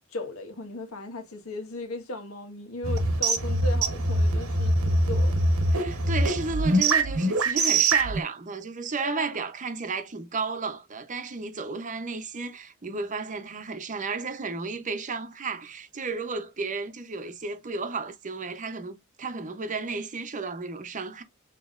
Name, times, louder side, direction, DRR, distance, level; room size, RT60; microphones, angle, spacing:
voice 1, 0.0-5.3 9.0-9.3, left 2 dB, 85° left, 1.5 m, -37 dB
sound 1, 2.8-8.2, right 2 dB, 80° right, 1.0 m, -23 dB
voice 2, 5.7-21.2, right 4 dB, 35° right, 0.7 m, -33 dB
7.0 x 3.0 x 2.4 m
head